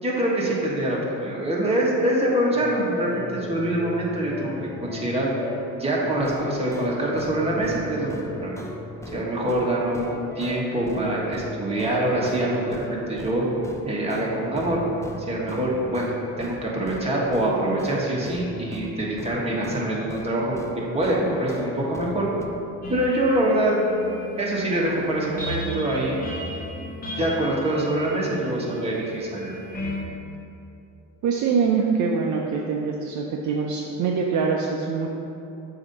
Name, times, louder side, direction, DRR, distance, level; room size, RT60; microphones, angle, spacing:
voice 1, 0.0-4.5 4.8-5.3 5.7-8.5 9.1-13.4 13.8-14.8 15.3-16.1 16.4-20.6 20.9-22.3 22.9-23.8 24.4-26.2 27.1-29.5, right 1 dB, 15° right, -5 dB, 1.5 m, -24 dB
sound 1, 2.6-16.6 16.9-20.3 20.5-22.5, left 1 dB, 10° left, 0.5 m, -38 dB
sound 2, 22.8-30.0, left 1 dB, 25° left, 1.3 m, -36 dB
voice 2, 31.2-35.1, right 5 dB, 55° right, 0 dB, 0.6 m, -24 dB
7.3 x 2.9 x 5.3 m, 2.7 s
cardioid pair, 95°, 36 cm